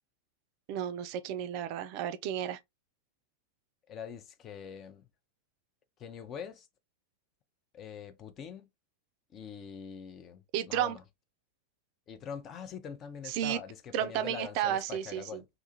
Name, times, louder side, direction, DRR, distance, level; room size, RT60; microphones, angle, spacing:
voice 1, 0.7-2.6 10.5-11.0 13.3-13.6 13.9-15.4, right 10 dB, 45° right, 0.4 m, -32 dB
voice 2, 3.9-5.1 6.0-6.7 7.7-8.7 9.3-11.0 12.1-15.5, left 7 dB, 30° left, 0.5 m, -44 dB
2.5 x 2.3 x 2.9 m
figure-of-eight pair, 90°, 0 cm